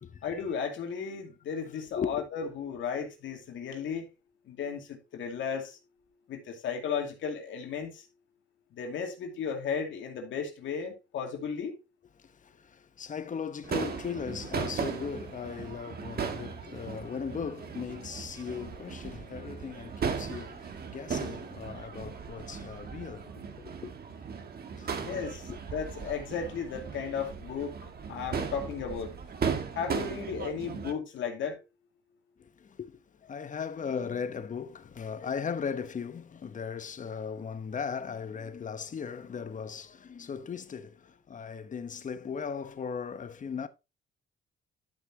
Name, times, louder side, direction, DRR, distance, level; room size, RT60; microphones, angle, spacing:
voice 1, 0.2-4.1 4.4-5.8 6.3-8.1 8.7-11.8 25.0-29.1 29.7-31.6, left 6 dB, 75° left, 2.4 m, -35 dB
voice 2, 2.0-2.3 12.2-23.9 24.8-25.0 25.5-25.6 32.4-43.7, left 6 dB, 40° left, 1.0 m, -38 dB
Crowd / Fireworks, 13.6-30.9, right 6 dB, 50° right, 1.7 m, -37 dB
11.5 x 6.0 x 2.8 m
cardioid pair, 90°, 20 cm